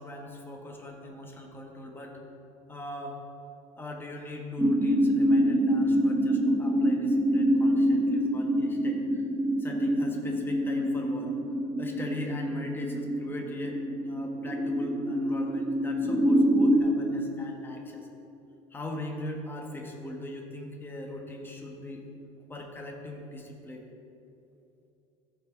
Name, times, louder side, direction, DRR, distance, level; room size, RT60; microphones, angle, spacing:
voice 1, 0.0-2.2 2.7-3.2 3.8-9.3 9.6-11.3 11.8-18.1 18.7-22.0 22.5-23.9, left 1 dB, 15° left, 1 dB, 1.3 m, -40 dB
sound 1, 4.6-16.8, equal, 10° right, 1.0 m, -26 dB
14.0 x 5.0 x 5.2 m, 2.8 s
cardioid pair, 130°, 15 cm